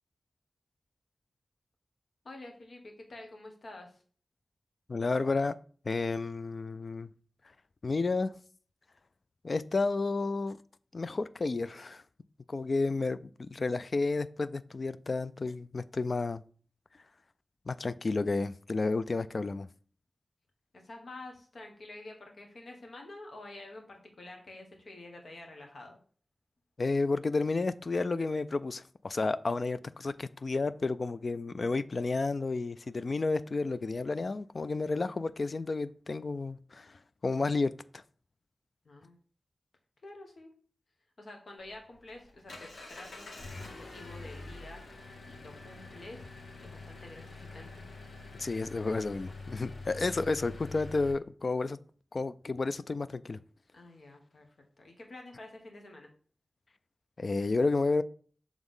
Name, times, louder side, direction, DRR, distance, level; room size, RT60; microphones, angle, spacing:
voice 1, 2.2-4.0 20.7-26.0 38.8-39.2 40.0-40.5 41.2-45.0 45.2-46.3 46.6-47.8 50.4-50.6 53.7-56.1, left 2 dB, 70° left, 1.4 m, -49 dB
voice 2, 4.9-5.6 5.9-7.1 7.8-8.3 9.4-10.6 10.9-12.0 12.5-16.4 17.7-19.7 26.8-38.0 48.4-51.8 52.1-53.4 57.2-58.0, left 3 dB, 50° left, 0.3 m, -31 dB
Engine, 41.6-51.1, left 3 dB, 90° left, 1.5 m, -46 dB
7.1 x 3.5 x 3.8 m
wide cardioid pair, 100°, 0 cm